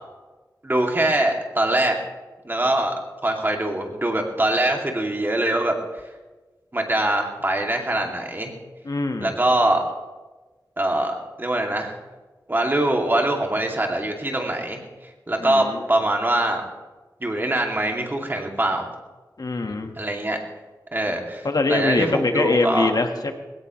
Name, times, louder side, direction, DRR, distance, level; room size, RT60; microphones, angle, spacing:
voice 1, 0.6-2.0 2.4-2.9 3.2-6.0 6.7-8.5 9.2-9.8 10.8-11.9 12.5-14.8 15.3-16.6 17.2-18.9 20.0-20.4 20.9-22.9, right 1 dB, 30° right, 1 dB, 2.5 m, -23 dB
voice 2, 8.8-9.3 15.4-15.8 19.4-19.9 21.4-23.3, left 3 dB, 60° left, 5 dB, 1.6 m, -23 dB
19.5 x 17.5 x 3.2 m, 1.2 s
wide cardioid pair, 85°, 7 cm